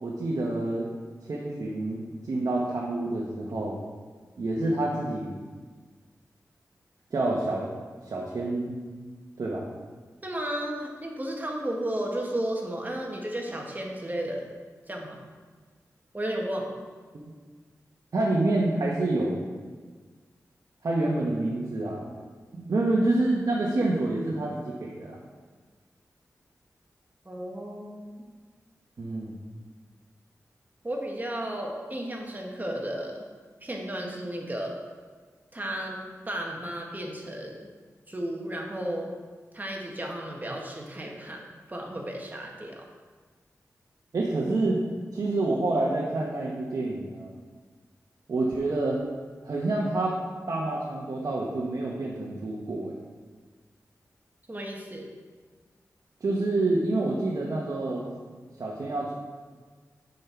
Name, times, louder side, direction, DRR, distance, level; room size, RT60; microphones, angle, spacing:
voice 1, 0.0-0.9 1.2-3.8 4.4-5.4 7.1-7.7 8.0-8.8 9.4-9.6 17.1-17.3 18.1-19.5 20.8-22.1 22.5-25.2 29.0-29.4 44.1-44.8 45.1-47.3 48.3-49.0 49.4-50.1 50.5-52.9 56.2-58.0 58.6-59.1, right 2 dB, 70° right, -4 dB, 1.2 m, -27 dB
voice 2, 10.2-14.5 14.9-15.2 16.1-16.7 27.3-28.1 30.8-33.2 33.6-34.8 35.5-37.7 38.1-39.1 39.5-42.8 54.5-55.1, right 1 dB, 30° right, 0 dB, 1.7 m, -33 dB
7.7 x 5.5 x 5.8 m, 1.5 s
cardioid pair, 50°, 6 cm